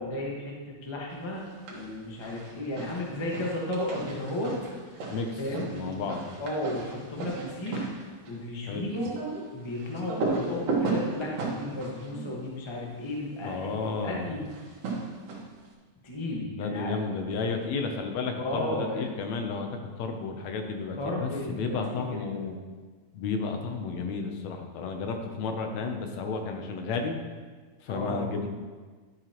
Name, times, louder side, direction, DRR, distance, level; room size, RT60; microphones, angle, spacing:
voice 1, 0.0-4.6 5.4-6.1 6.4-7.9 8.3-9.2 9.5-13.7 14.0-14.4 16.0-16.9 18.4-19.1 21.0-22.5 27.9-28.3, left 1 dB, 40° left, -3 dB, 0.4 m, -34 dB
sound 1, 1.4-1.9 2.2-13.2 14.5-15.7, right 3 dB, 80° right, 3.0 m, -35 dB
voice 2, 5.7-6.3 8.7-8.9 13.4-14.4 16.6-19.7 20.0-22.6 23.1-27.2 27.8-28.5, left 4 dB, 75° left, 4 dB, 2.0 m, -32 dB
11.5 x 8.0 x 3.0 m, 1.4 s
omnidirectional pair, 3.3 m